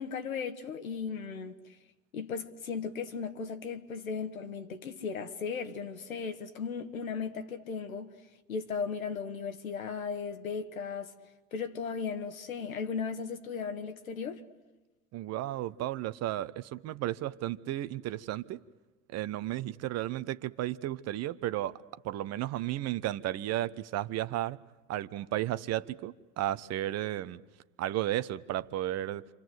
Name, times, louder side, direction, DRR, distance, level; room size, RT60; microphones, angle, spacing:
voice 1, 0.0-1.6 2.1-8.1 8.5-11.1 11.5-14.4, left 5 dB, 85° left, 1.8 m, -36 dB
voice 2, 15.1-18.6 19.1-24.6 24.9-27.4 27.8-29.2, right 14 dB, 40° right, 0.9 m, -33 dB
28.5 x 26.0 x 7.9 m
hypercardioid pair, 85°, 40 cm